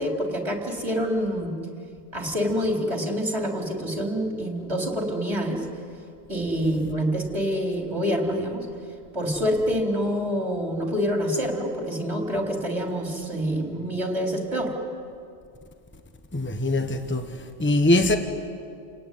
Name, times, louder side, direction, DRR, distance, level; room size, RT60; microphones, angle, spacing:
voice 1, 0.0-1.5 2.1-5.7 6.3-8.7 9.1-14.7, equal, 25° right, 3.7 m, -26 dB
voice 2, 16.3-18.2, left 1 dB, 10° left, 1.2 m, -22 dB
28.5 x 19.0 x 9.3 m
omnidirectional pair, 1.1 m